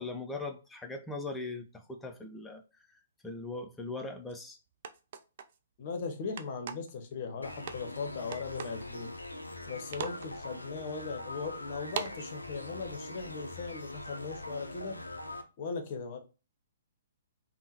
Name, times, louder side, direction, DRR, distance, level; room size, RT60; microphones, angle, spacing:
voice 1, 0.0-2.6 3.2-4.6, left 3 dB, 10° left, 0.5 m, -40 dB
sound 1, 4.3-4.4 4.8-5.6 6.4-6.9 7.7-8.0 8.3-8.8 9.3-9.7 9.9-10.3 10.9-11.0 11.9-12.2, right 7 dB, 50° right, 0.3 m, -39 dB
voice 2, 5.8-9.1 9.7-15.0 15.6-16.2, left 4 dB, 45° left, 0.7 m, -38 dB
sound 2, 7.4-15.4, left 2 dB, 85° left, 0.4 m, -43 dB
3.6 x 2.1 x 2.8 m
figure-of-eight pair, 120°, 0 cm